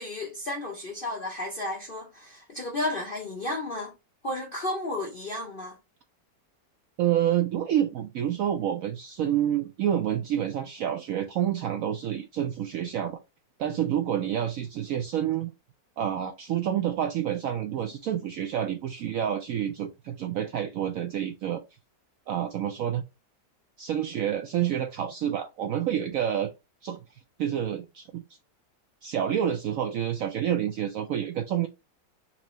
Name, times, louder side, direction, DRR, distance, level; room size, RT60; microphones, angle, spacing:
voice 1, 0.0-3.9 4.2-5.8, left 1 dB, 55° left, 0.6 m, -33 dB
voice 2, 7.0-13.2 13.6-15.5 16.0-21.6 22.3-23.0 23.8-26.5 26.8-27.0 27.4-28.2 29.0-31.7, right 10 dB, 75° right, 0.8 m, -28 dB
4.5 x 2.7 x 3.0 m
omnidirectional pair, 1.9 m